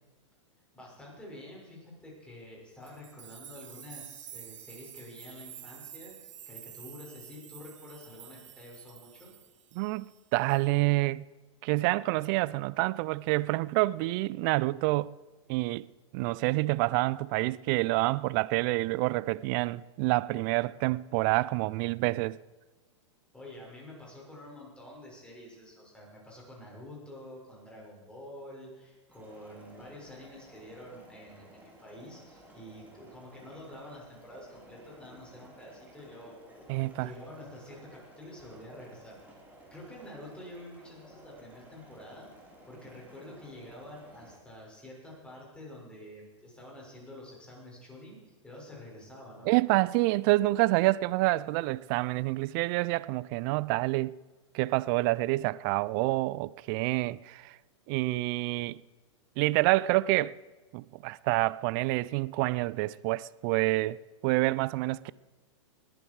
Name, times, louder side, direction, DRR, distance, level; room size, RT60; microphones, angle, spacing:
voice 1, 0.7-9.3 23.3-36.6 36.9-39.2 39.7-42.3 42.6-49.5, left 1 dB, 5° left, 6.4 m, -48 dB
sound 1, 2.8-10.2 10.5-10.8, right 10 dB, 75° right, 1.2 m, -49 dB
voice 2, 9.7-11.2 11.6-15.1 15.5-15.9 16.1-22.4 36.7-37.1 49.4-54.2 54.5-57.6 57.9-58.8 59.4-60.4 60.7-64.0 64.2-65.1, right 20 dB, 45° right, 0.5 m, -27 dB
sound 2, 29.1-44.4, right 1 dB, 10° right, 3.9 m, -55 dB
20.5 x 10.5 x 4.8 m
hypercardioid pair, 120°, 16 cm